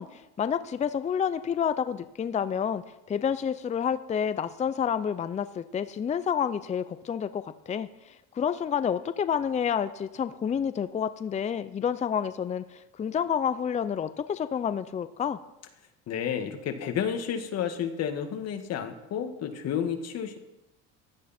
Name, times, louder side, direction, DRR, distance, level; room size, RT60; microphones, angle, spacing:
voice 1, 0.0-2.8 3.1-15.4, left 8 dB, 25° left, 12 dB, 0.5 m, -29 dB
voice 2, 16.1-20.4, left 8 dB, 55° left, 6 dB, 1.9 m, -31 dB
16.0 x 11.5 x 4.3 m, 0.94 s
cardioid pair, 115°, 31 cm